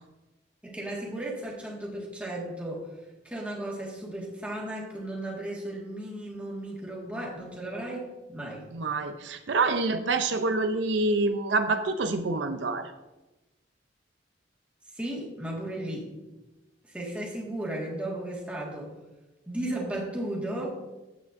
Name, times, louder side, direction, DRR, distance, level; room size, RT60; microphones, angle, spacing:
voice 1, 0.6-2.9 3.2-8.7 14.9-16.1 16.9-18.9 19.5-20.7, right 1 dB, 5° right, -4 dB, 1.7 m, -35 dB
voice 2, 8.7-12.9, right 3 dB, 75° right, 8 dB, 0.5 m, -27 dB
9.6 x 8.2 x 2.6 m, 1.1 s
head